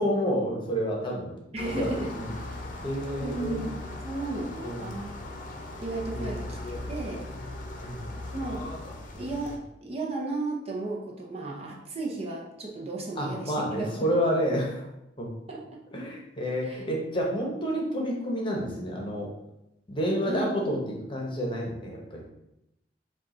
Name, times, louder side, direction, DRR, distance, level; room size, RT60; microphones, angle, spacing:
voice 1, 0.0-1.3 1.8-2.4 2.8-3.7 4.6-4.9 6.1-6.4 7.8-8.2 13.2-14.9 15.2-15.3 15.9-19.3 19.9-22.2, equal, 30° left, -2 dB, 1.0 m, -29 dB
voice 2, 1.5-2.1 3.2-5.1 5.8-6.6 6.9-7.3 8.3-8.6 9.2-14.1 15.5-15.8 16.6-16.8 20.3-20.5, right 2 dB, 35° right, -2 dB, 0.7 m, -34 dB
sound 1, 1.6-9.6, left 2 dB, 50° left, 0.7 m, -38 dB
5.2 x 2.4 x 4.2 m, 0.85 s
head